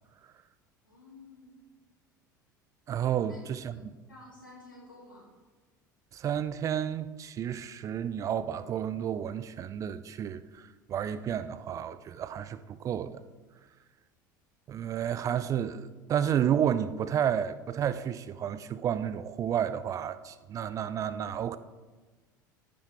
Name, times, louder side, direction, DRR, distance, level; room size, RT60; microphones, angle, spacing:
voice 1, 0.8-1.6 3.3-3.8 4.1-5.3, left 2 dB, 85° left, 2.3 m, -52 dB
voice 2, 2.9-3.8 6.1-13.2 14.7-21.6, right 9 dB, 30° right, 0.4 m, -31 dB
14.0 x 5.7 x 3.4 m
figure-of-eight pair, 70°, 11 cm